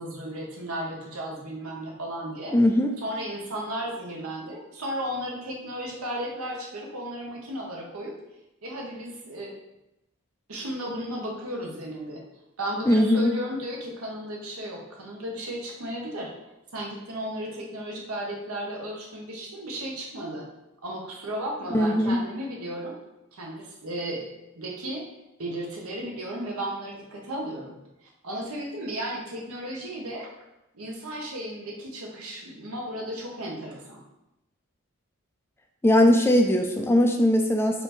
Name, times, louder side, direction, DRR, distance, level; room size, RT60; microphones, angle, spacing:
voice 1, 0.0-2.6 3.0-8.1 8.6-9.5 10.5-12.2 12.6-16.3 16.7-20.5 20.8-22.9 23.3-24.3 24.6-25.0 25.4-30.3 30.7-34.0, right 1 dB, 90° right, -1 dB, 1.0 m, -34 dB
voice 2, 2.5-3.0 12.9-13.3 21.7-22.2 35.8-37.8, left 1 dB, 10° left, 3 dB, 0.3 m, -20 dB
4.2 x 2.7 x 4.3 m, 0.92 s
head